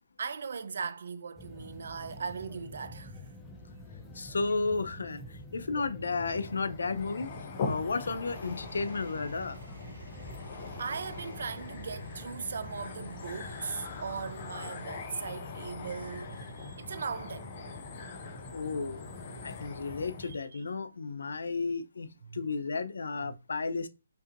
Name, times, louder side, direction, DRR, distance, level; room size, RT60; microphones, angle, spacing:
voice 1, 0.2-3.3 10.8-17.5 20.2-20.7 22.2-22.4 23.2-23.4, right 5 dB, 55° right, 0.4 m, -39 dB
sound 1, 1.4-20.4, left 1 dB, 5° left, 0.5 m, -48 dB
voice 2, 4.2-5.2 5.5-7.3 7.6-9.6 18.5-19.0 19.4-22.1 22.3-23.9, left 4 dB, 80° left, 0.6 m, -33 dB
sound 2, 6.4-20.3, left 4 dB, 30° left, 0.8 m, -42 dB
sound 3, 8.2-14.4, equal, 90° right, 1.3 m, -50 dB
5.5 x 2.7 x 2.6 m
hypercardioid pair, 175°, 0 cm